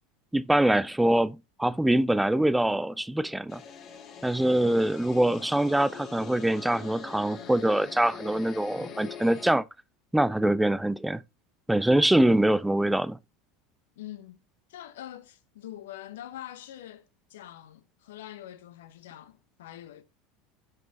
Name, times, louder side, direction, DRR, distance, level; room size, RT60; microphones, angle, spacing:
voice 1, 0.3-3.6 4.2-9.6 10.1-11.2 11.7-13.2, right 1 dB, 5° right, 0.4 m, -24 dB
sound 1, 3.5-9.5, left 6 dB, 40° left, 1.4 m, -43 dB
voice 2, 14.0-14.4 14.7-20.0, left 12 dB, 65° left, 0.8 m, -44 dB
6.6 x 6.0 x 2.8 m
figure-of-eight pair, 75°, 0 cm